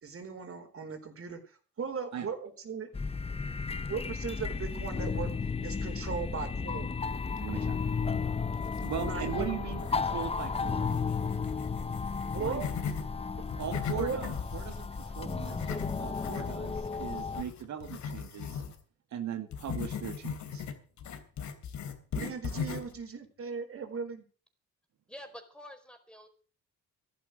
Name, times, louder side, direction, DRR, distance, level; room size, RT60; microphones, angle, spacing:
voice 1, 0.0-1.4 1.8-2.9 3.9-5.3 5.6-6.9 9.0-9.5 12.3-12.6 13.9-14.3 22.1-24.2, right 5 dB, 45° right, 7 dB, 4.6 m, -37 dB
sound 1, 2.9-17.4, left 5 dB, 20° left, 0.8 m, -34 dB
voice 2, 7.4-7.8 8.8-10.9 12.4-12.6 13.5-15.6 16.0-18.6 19.1-20.7, right 8 dB, 70° right, 7 dB, 2.1 m, -39 dB
sound 2, 8.5-9.4 9.7-13.1 13.4-18.8 19.5-23.0, left 7 dB, 70° left, 3.3 m, -39 dB
voice 3, 25.1-26.3, left 1 dB, 5° left, 6 dB, 4.6 m, -48 dB
14.5 x 11.5 x 6.5 m, 0.39 s
cardioid pair, 90°, 30 cm